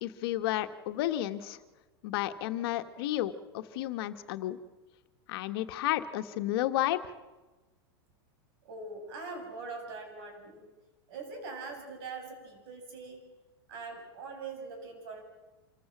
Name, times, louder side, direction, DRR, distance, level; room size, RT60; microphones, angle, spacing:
voice 1, 0.0-1.6 2.0-4.6 5.3-7.0, left 14 dB, 65° left, 9 dB, 1.5 m, -32 dB
voice 2, 8.6-10.7 11.1-13.2 13.7-15.2, right 4 dB, 65° right, 3 dB, 7.5 m, -42 dB
26.0 x 15.0 x 7.4 m, 1.2 s
hypercardioid pair, 115°, 14 cm